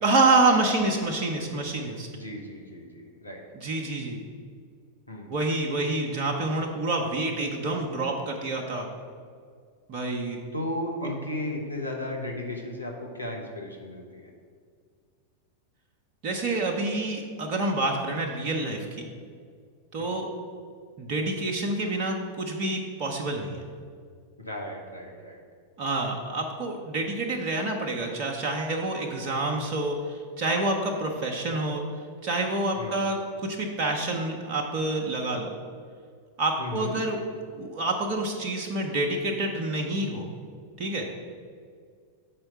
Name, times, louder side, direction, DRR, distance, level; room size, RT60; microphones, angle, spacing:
voice 1, 0.0-2.1 3.5-4.2 5.3-8.9 9.9-10.4 11.0-11.1 16.2-19.1 19.9-20.3 21.0-23.6 25.8-31.8 32.2-35.5 36.4-37.2 37.5-40.3 40.8-41.1, right 2 dB, 40° right, 1 dB, 0.8 m, -27 dB
voice 2, 2.1-3.4 5.1-5.3 10.5-14.3 20.1-20.2 24.4-25.4 32.8-33.0 36.6-36.9, left 1 dB, 85° left, 0 dB, 1.0 m, -35 dB
6.7 x 4.4 x 5.7 m, 2.1 s
figure-of-eight pair, 90°, 0 cm